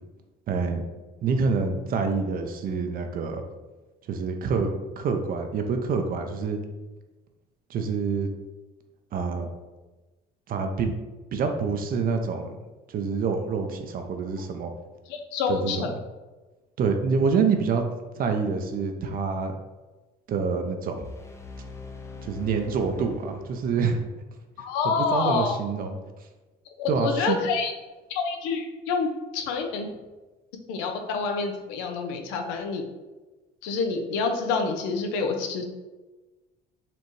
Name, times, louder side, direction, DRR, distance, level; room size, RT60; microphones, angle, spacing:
voice 1, 0.5-0.8 1.2-3.4 4.1-4.7 5.0-6.6 7.7-8.3 9.1-9.5 10.5-10.9 11.3-12.6 12.9-14.7 15.5-15.8 16.8-17.9 18.2-19.6 20.3-20.9 22.2-24.1 24.8-26.0 26.9-27.4, right 5 dB, 50° right, 5 dB, 0.5 m, -26 dB
voice 2, 15.1-15.9 24.6-25.6 26.8-27.7 28.1-29.9 30.7-32.8 33.6-35.6, left 5 dB, 90° left, 5 dB, 0.6 m, -27 dB
sound 1, 21.0-24.0, left 3 dB, 15° left, 0.5 m, -42 dB
4.3 x 2.6 x 3.1 m, 1.2 s
supercardioid pair, 90°, 18 cm